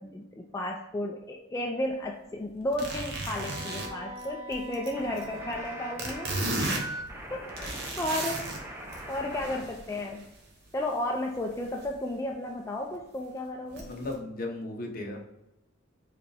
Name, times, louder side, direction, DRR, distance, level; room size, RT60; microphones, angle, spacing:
voice 1, 0.0-6.3 7.3-8.5 9.1-10.3 10.7-13.9, left 1 dB, 15° left, 0 dB, 0.3 m, -33 dB
sound 1, 2.7-5.7 6.0-8.6 8.9-10.3 11.6-11.9 12.3-12.4 12.9-13.0 13.8-14.1, right 2 dB, 50° right, 0.9 m, -35 dB
Wind instrument woodwind instrument, 3.3-6.8, right 1 dB, 30° right, 1.3 m, -44 dB
sound 2, 4.9-9.6 9.9-11.8, right 1 dB, 10° right, 0.7 m, -43 dB
voice 2, 13.7-15.2, left 2 dB, 45° left, 1 dB, 0.9 m, -36 dB
4.8 x 3.4 x 3.3 m, 0.90 s
head